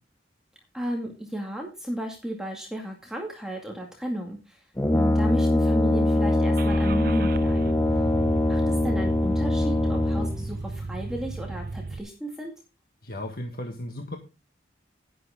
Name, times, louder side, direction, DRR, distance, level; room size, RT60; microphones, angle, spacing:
voice 1, 0.7-4.7 4.9-8.0 8.5-12.5, right 1 dB, 5° right, 0 dB, 2.2 m, -34 dB
Brass instrument, 4.8-10.5, left 1 dB, 15° left, 0.7 m, -23 dB
Car / Engine starting, 6.6-12.0, right 3 dB, 50° right, 0.6 m, -35 dB
voice 2, 13.0-14.2, left 1 dB, 55° left, 3 dB, 1.7 m, -35 dB
11.5 x 11.0 x 3.7 m, 0.28 s
head